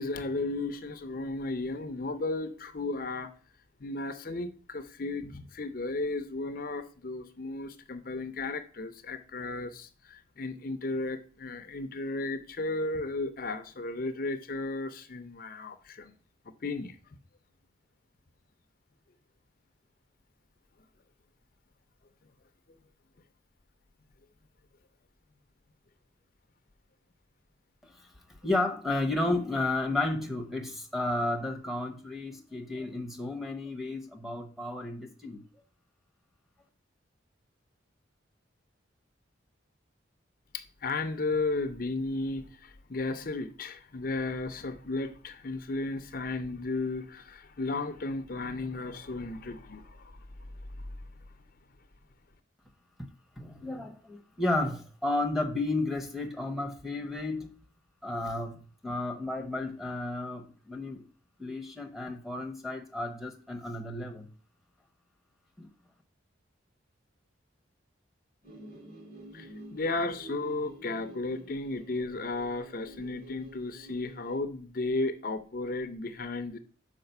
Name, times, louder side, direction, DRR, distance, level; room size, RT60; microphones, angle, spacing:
voice 1, 0.0-3.3 3.8-16.1 16.6-17.0 22.7-22.8 40.5-50.3 50.8-51.0 69.3-76.6, left 2 dB, 45° left, 0.6 m, -34 dB
voice 2, 28.4-35.4 53.4-57.5 58.0-61.0 61.4-64.3 65.6-65.7, left 2 dB, ahead, 0.9 m, -32 dB
sound 1, 68.4-74.4, right 2 dB, 40° right, 3.6 m, -49 dB
5.8 x 4.9 x 6.6 m
head